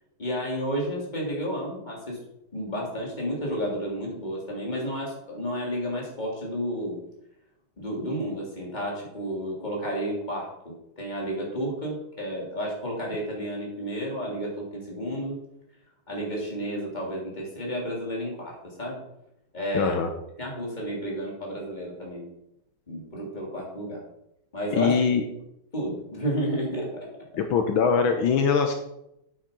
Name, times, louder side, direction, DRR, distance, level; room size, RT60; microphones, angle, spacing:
voice 1, 0.2-2.2 2.5-7.0 7.8-15.4 16.1-19.0 19.5-19.9 20.4-22.2 22.9-24.0 24.5-24.9 25.7-27.1, equal, 20° left, -3 dB, 3.2 m, -31 dB
voice 2, 19.7-20.1 24.7-25.2 27.4-28.7, left 6 dB, 75° left, 5 dB, 1.7 m, -22 dB
8.6 x 8.6 x 5.3 m, 0.81 s
omnidirectional pair, 2.3 m